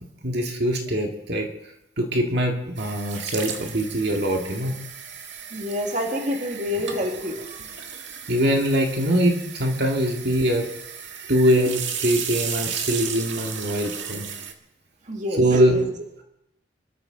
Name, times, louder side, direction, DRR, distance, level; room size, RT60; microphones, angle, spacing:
voice 1, 0.2-1.5 2.0-4.8 8.3-10.7 11.3-14.3 15.4-16.2, equal, 60° right, 2 dB, 2.1 m, -23 dB
sound 1, 2.8-14.5, right 7 dB, 80° right, 1.8 m, -35 dB
voice 2, 5.5-7.4 15.1-15.4, left 1 dB, 40° right, 2 dB, 2.0 m, -27 dB
26.5 x 13.5 x 3.9 m, 0.85 s
head